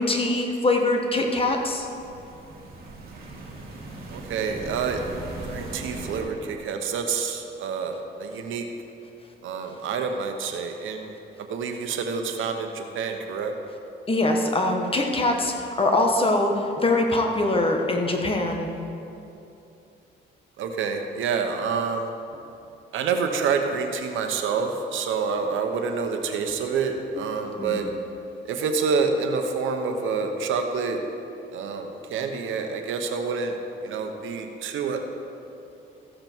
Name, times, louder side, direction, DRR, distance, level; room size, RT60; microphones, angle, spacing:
voice 1, 0.0-1.9 14.1-18.7 27.6-27.9, left 2 dB, 30° left, 3 dB, 1.4 m, -23 dB
sound 1, 1.3-6.2, right 2 dB, 50° right, 2.5 m, -39 dB
voice 2, 4.1-5.0 5.5-8.7 9.4-13.5 20.6-22.1 22.9-27.9 28.4-31.0 31.5-33.6 33.8-35.0, right 5 dB, 80° right, 5 dB, 1.1 m, -27 dB
15.0 x 7.6 x 4.6 m, 2.8 s
cardioid pair, 90°, 20 cm